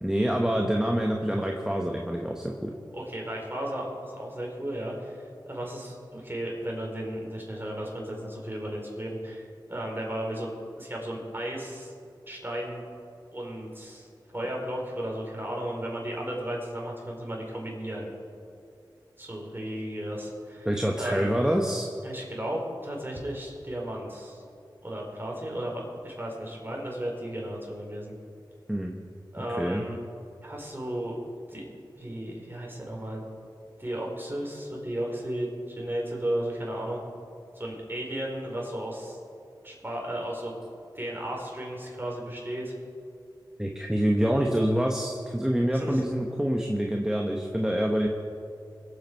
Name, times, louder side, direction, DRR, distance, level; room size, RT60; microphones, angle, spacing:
voice 1, 0.0-2.7 20.6-21.9 28.7-29.0 29.6-29.8 43.6-48.1, equal, 5° right, 1 dB, 1.1 m, -26 dB
voice 2, 2.9-10.5 10.8-11.9 12.3-12.8 13.3-14.1 14.3-18.1 19.2-20.7 20.9-21.3 22.0-24.4 24.8-28.1 29.3-30.0 30.4-31.2 31.5-31.7 32.0-33.2 33.8-37.0 37.6-39.2 39.6-40.6 40.9-42.7 45.7-46.0, right 1 dB, 25° right, -2 dB, 3.9 m, -34 dB
22.5 x 8.1 x 4.6 m, 2.5 s
cardioid pair, 45°, 8 cm